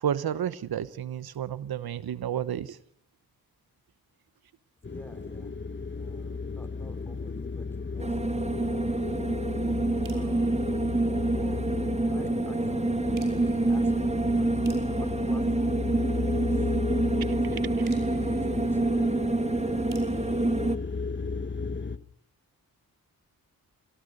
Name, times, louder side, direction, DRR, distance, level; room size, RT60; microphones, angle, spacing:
voice 1, 0.0-2.8 17.3-17.4 17.8-17.9, right 9 dB, 80° right, 15 dB, 1.0 m, -31 dB
sound 1, 4.8-22.0, left 4 dB, 30° left, 1.4 m, -34 dB
voice 2, 4.9-5.5 5.9-9.5 10.1-10.9 11.1-11.7 12.1-14.5 14.9-16.7 17.0-19.0, equal, 5° left, 9 dB, 4.7 m, -49 dB
sound 2, 8.0-20.8, right 2 dB, 20° right, 1.4 m, -27 dB
sound 3, 10.0-11.8 13.1-16.5 17.8-21.7, right 4 dB, 60° right, 6.8 m, -56 dB
26.5 x 18.0 x 6.7 m, 0.66 s
cardioid pair, 50°, 37 cm